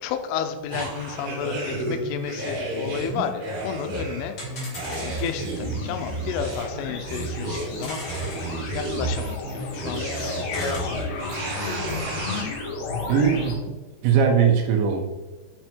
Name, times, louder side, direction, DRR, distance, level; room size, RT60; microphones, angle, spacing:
voice 1, 0.0-4.6 4.9-11.4, left 8 dB, 90° left, 8 dB, 3.3 m, -32 dB
sound 1, 0.7-12.4, right 2 dB, 60° right, 3.4 m, -31 dB
sound 2, 2.4-2.5 2.6-2.7 2.9-3.0 3.5-3.6 3.8-3.9 4.4-5.5 6.4-6.5 6.8-6.9 7.3-8.5 9.6-9.7 9.9-10.8, left 2 dB, 50° left, 1.3 m, -38 dB
sound 3, 4.6-13.5, left 3 dB, 70° left, 3.7 m, -34 dB
voice 2, 13.1-13.7 14.0-15.0, right 7 dB, 75° right, 2 dB, 3.3 m, -20 dB
7.5 x 5.7 x 4.5 m, 1.2 s
omnidirectional pair, 5.6 m